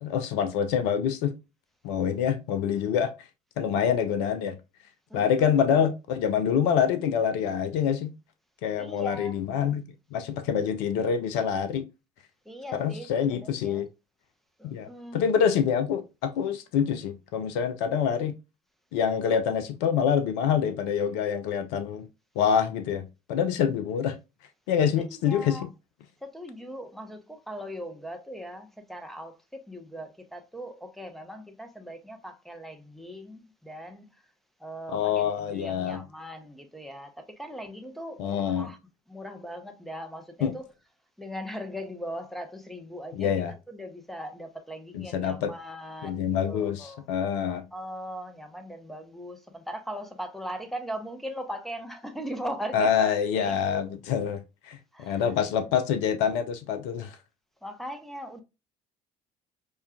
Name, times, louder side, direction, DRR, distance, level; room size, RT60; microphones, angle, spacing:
voice 1, 0.0-1.3 1.8-3.1 3.6-4.6 5.1-8.1 8.6-9.8 10.1-11.8 12.7-13.9 14.6-18.3 18.9-22.1 22.4-24.2 24.7-25.6 34.9-36.0 38.2-38.7 40.4-40.5 43.1-43.5 44.9-45.5 46.0-47.7 52.7-57.2, left 8 dB, 60° left, 0.5 m, -26 dB
voice 2, 5.1-5.7 8.8-9.3 12.5-13.8 14.6-15.3 25.0-25.7 26.2-34.3 34.6-38.8 39.1-40.7 41.2-47.0 47.5-53.1 53.4-53.9 54.9-55.2 57.6-58.4, equal, ahead, 0.7 m, -39 dB
5.4 x 2.3 x 2.3 m
figure-of-eight pair, 55°, 21 cm